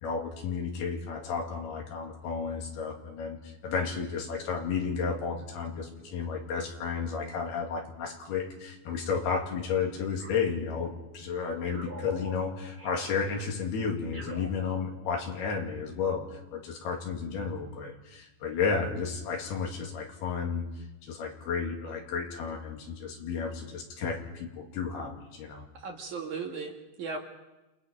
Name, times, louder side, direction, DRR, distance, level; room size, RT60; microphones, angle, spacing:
voice 1, 0.0-20.7 21.0-25.6, left 5 dB, 75° left, 1 dB, 4.6 m, -32 dB
sound 1, 10.2-11.2 11.6-15.3, right 2 dB, 20° right, 2.4 m, -47 dB
voice 2, 25.7-27.2, right 4 dB, 55° right, 2 dB, 2.9 m, -37 dB
28.0 x 20.0 x 5.3 m, 1.0 s
omnidirectional pair, 4.5 m